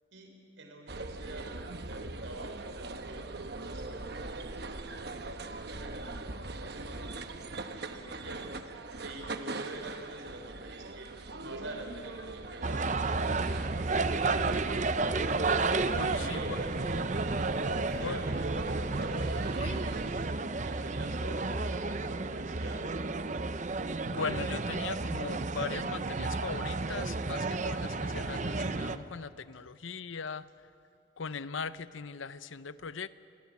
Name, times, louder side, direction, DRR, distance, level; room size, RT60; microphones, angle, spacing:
voice 1, 0.1-1.5 1.9-4.1 4.4-8.5 9.0-11.1 11.4-15.7 16.0-16.8 17.8-18.7 19.0-22.9, right 1 dB, 75° right, 3 dB, 4.1 m, -47 dB
sound 1, 0.9-20.1, right 2 dB, 55° right, 1.0 m, -40 dB
sound 2, 12.6-29.0, right 3 dB, 40° right, 0.7 m, -32 dB
voice 2, 15.9-16.6 18.0-18.2 19.6-19.8 24.0-30.7 31.2-33.1, left 5 dB, 80° left, 14 dB, 0.7 m, -39 dB
sound 3, 17.9-20.2 22.2-22.3, equal, 20° left, 4.4 m, -61 dB
26.5 x 17.5 x 8.4 m, 2.6 s
head